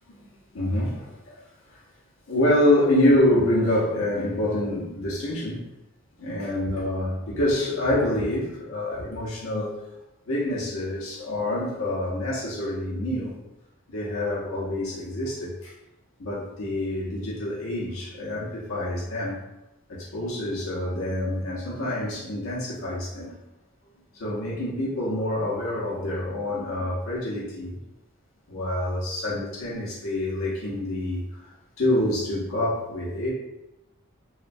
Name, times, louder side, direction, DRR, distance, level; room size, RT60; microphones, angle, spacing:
voice 1, 0.1-1.4 1.7-1.8 2.3-5.6 6.2-9.8 10.3-13.3 13.9-15.7 16.2-19.4 19.9-23.3 24.1-27.8 28.5-31.2 31.8-33.3, left 1 dB, 80° left, -6 dB, 0.6 m, -26 dB
3.0 x 2.1 x 2.5 m, 0.96 s
head